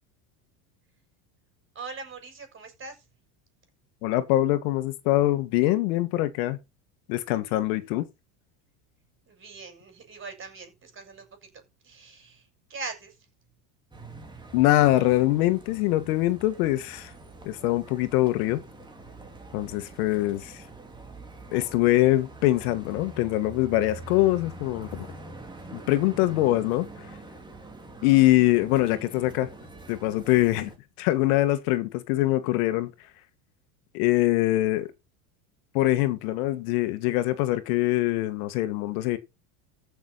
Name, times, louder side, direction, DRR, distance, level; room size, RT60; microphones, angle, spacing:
voice 1, 1.7-3.0 9.3-11.5 11.8-13.2, right 4 dB, 25° right, 6.5 m, -41 dB
voice 2, 4.0-6.6 7.1-8.0 14.5-17.1 17.4-18.6 19.5-20.6 21.5-25.1 25.7-26.9 28.0-29.5 29.9-30.7 31.0-32.9 33.9-34.9 35.7-39.2, left 16 dB, 75° left, 2.0 m, -23 dB
sound 1, 13.9-30.8, right 2 dB, 10° right, 2.9 m, -45 dB
15.0 x 6.7 x 4.1 m
supercardioid pair, 135°, 44 cm